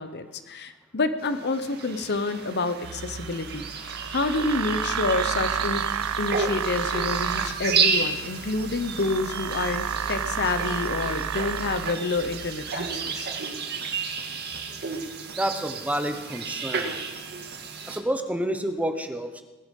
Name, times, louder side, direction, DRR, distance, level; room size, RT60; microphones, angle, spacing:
voice 1, 0.0-5.8 6.2-13.3, left 3 dB, 55° left, 10 dB, 1.0 m, -28 dB
sound 1, 1.2-18.0, right 5 dB, 50° right, 1.7 m, -32 dB
sound 2, 2.8-13.0, right 7 dB, 80° right, 0.5 m, -31 dB
voice 2, 15.4-16.9 17.9-19.4, right 1 dB, 5° right, 7 dB, 1.0 m, -29 dB
19.5 x 11.5 x 5.5 m, 1.1 s
head